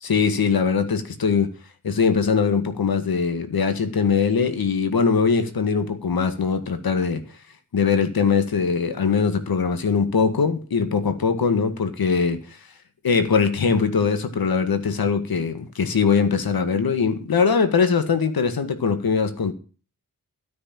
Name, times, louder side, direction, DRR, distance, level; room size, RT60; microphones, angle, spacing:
voice 1, 0.0-1.5 1.8-7.2 7.7-12.4 13.0-19.5, left 5 dB, 85° left, 1.9 m, -21 dB
13.0 x 6.7 x 8.9 m
cardioid pair, 60°, 35 cm